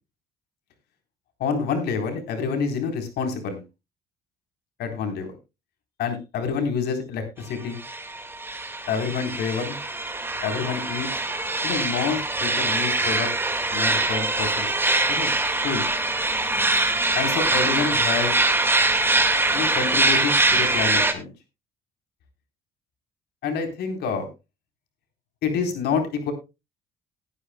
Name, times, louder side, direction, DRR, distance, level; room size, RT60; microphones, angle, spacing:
voice 1, 1.4-3.6 4.8-5.3 6.0-7.8 8.9-9.8 10.4-11.1 11.6-13.3 13.7-14.8 15.1-15.3 15.6-15.9 17.1-18.4 19.5-21.3 23.4-24.3 25.4-26.3, left 5 dB, 75° left, 5 dB, 4.0 m, -27 dB
sound 1, 7.8-21.1, right 2 dB, 15° right, 2.0 m, -23 dB
19.5 x 10.0 x 2.3 m, 0.26 s
cardioid pair, 110°, 17 cm